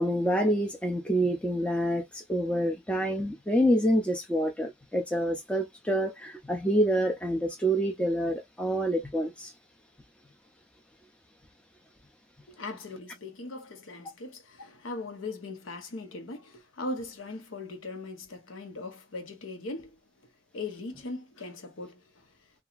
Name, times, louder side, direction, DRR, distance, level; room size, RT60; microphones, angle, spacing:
voice 1, 0.0-9.5, equal, 5° left, 0.4 m, -27 dB
voice 2, 12.5-20.0 20.5-22.3, left 2 dB, 85° left, 0.8 m, -39 dB
2.8 x 2.3 x 2.4 m
head